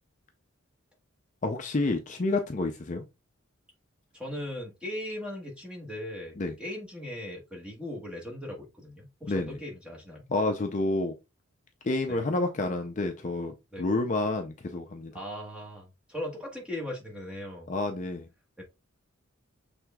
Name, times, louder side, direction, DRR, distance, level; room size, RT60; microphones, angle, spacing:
voice 1, 1.4-3.0 6.4-6.5 9.3-9.6 10.3-11.1 11.8-15.1 17.7-18.3, left 2 dB, 35° left, 0.5 m, -29 dB
voice 2, 4.1-10.2 12.1-12.2 13.7-13.9 15.1-17.7 18.6-18.7, left 1 dB, 5° right, 1.3 m, -38 dB
6.2 x 3.4 x 2.3 m
head